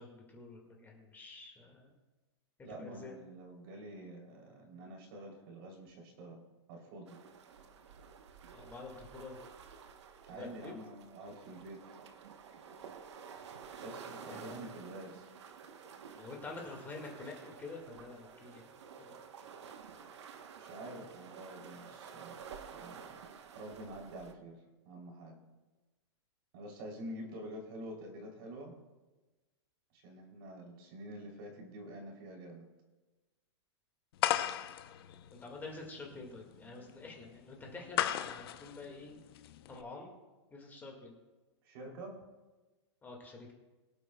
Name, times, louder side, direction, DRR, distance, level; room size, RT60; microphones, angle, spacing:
voice 1, 0.0-1.9 2.7-3.1 8.5-9.4 10.3-10.7 14.3-14.7 16.2-18.7 19.0-19.2 35.3-39.2 39.7-40.2 40.5-41.1 43.0-43.5, left 3 dB, 10° left, 0 dB, 1.9 m, -48 dB
voice 2, 2.6-6.4 6.7-7.2 10.3-11.8 13.8-15.3 20.6-22.4 22.7-23.2 23.5-25.4 26.5-28.7 29.9-32.6 41.6-42.2, right 1 dB, 50° right, 0 dB, 3.3 m, -47 dB
sound 1, 7.1-24.3, right 6 dB, 75° right, 1.1 m, -51 dB
sound 2, 34.2-39.8, left 12 dB, 55° left, 0.8 m, -36 dB
23.0 x 8.3 x 2.3 m, 1.2 s
hypercardioid pair, 145°, 15 cm